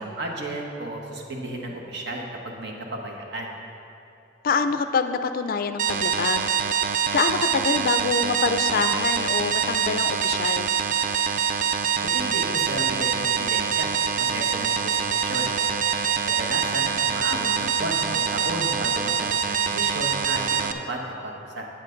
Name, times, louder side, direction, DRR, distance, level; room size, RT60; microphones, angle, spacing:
voice 1, 0.0-3.6 12.1-13.9 14.2-15.5 16.3-20.4 20.9-21.7, right 1 dB, 60° right, 0 dB, 1.2 m, -33 dB
voice 2, 4.4-6.5 7.1-10.7 17.3-17.7, left 5 dB, 50° left, 9 dB, 0.4 m, -26 dB
sound 1, 5.8-20.7, right 7 dB, 45° right, 0.4 m, -24 dB
9.0 x 8.9 x 3.8 m, 2.8 s
head